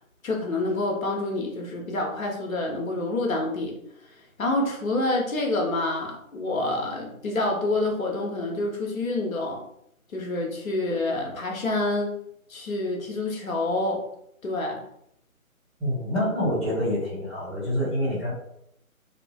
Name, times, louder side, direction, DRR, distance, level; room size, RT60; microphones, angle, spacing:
voice 1, 0.2-3.8 4.4-9.6 10.1-12.2 12.5-14.0 14.4-14.8, left 2 dB, 70° left, 1 dB, 0.9 m, -27 dB
voice 2, 15.8-18.3, equal, ahead, -18 dB, 0.5 m, -26 dB
2.8 x 2.3 x 2.2 m, 0.73 s
figure-of-eight pair, 160°, 43 cm